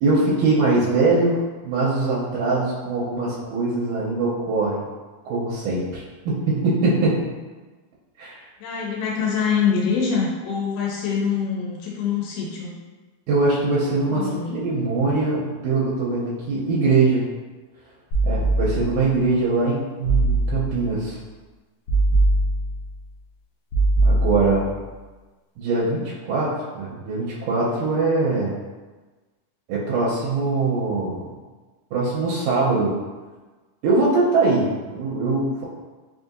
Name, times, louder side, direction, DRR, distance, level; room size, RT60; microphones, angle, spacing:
voice 1, 0.0-4.8 5.2-7.2 8.2-8.4 13.3-17.2 18.2-21.2 24.0-24.7 25.6-28.6 29.7-31.3 31.9-33.0 33.8-35.6, right 3 dB, 85° right, -7 dB, 2.1 m, -22 dB
voice 2, 8.6-12.7 14.1-14.6, left 6 dB, 90° left, -3 dB, 2.3 m, -24 dB
sound 1, 18.1-19.1 20.0-20.9 21.9-23.0 23.7-24.8, right 2 dB, 70° left, 1.4 m, -21 dB
5.1 x 2.7 x 2.5 m, 1.3 s
omnidirectional pair, 3.6 m